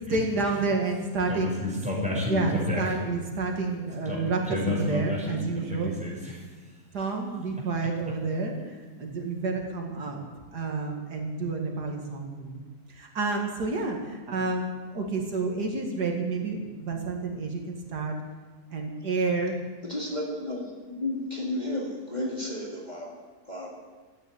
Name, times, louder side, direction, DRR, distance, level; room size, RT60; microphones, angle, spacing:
voice 1, 0.1-1.7 2.3-5.9 6.9-10.2 10.5-12.6 12.9-18.2 18.7-19.6, right 3 dB, 90° right, 1 dB, 2.6 m, -29 dB
voice 2, 1.3-3.0 4.0-6.8, left 2 dB, 5° right, -4 dB, 5.5 m, -31 dB
voice 3, 19.9-20.6 20.9-23.1 23.5-23.7, left 1 dB, 25° left, -4 dB, 2.4 m, -32 dB
13.5 x 9.5 x 9.0 m, 1.3 s
omnidirectional pair, 1.7 m